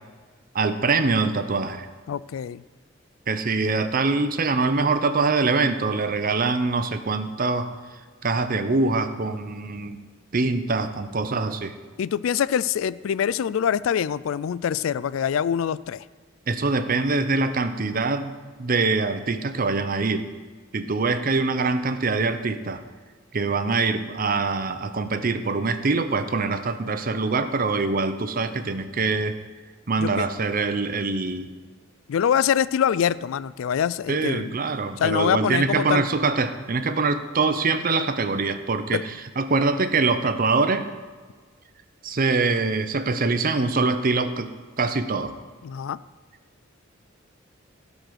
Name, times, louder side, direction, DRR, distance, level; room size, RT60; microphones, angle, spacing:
voice 1, 0.5-1.9 3.3-7.7 8.2-10.0 10.3-11.7 16.5-18.3 18.6-20.2 20.7-22.8 23.3-29.4 29.9-31.6 34.1-39.0 39.4-40.9 42.0-44.5 44.8-45.3, right 3 dB, 45° right, 10 dB, 0.7 m, -24 dB
voice 2, 2.1-2.6 12.0-16.0 30.0-30.3 32.1-34.5 35.0-36.0 38.9-39.0 45.6-46.0, left 8 dB, 85° left, 19 dB, 0.3 m, -24 dB
15.5 x 5.3 x 6.3 m, 1.5 s
head